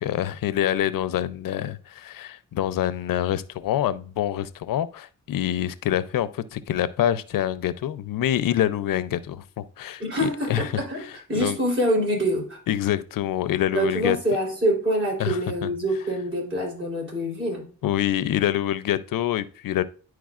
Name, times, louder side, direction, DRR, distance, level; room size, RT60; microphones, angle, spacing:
voice 1, 0.0-11.6 12.7-14.2 15.2-15.4 17.8-19.8, left 11 dB, 85° left, 0.5 m, -26 dB
voice 2, 10.0-12.6 13.7-17.7, equal, 35° right, 3.6 m, -25 dB
10.5 x 4.7 x 2.4 m
wide cardioid pair, 105°, 33 cm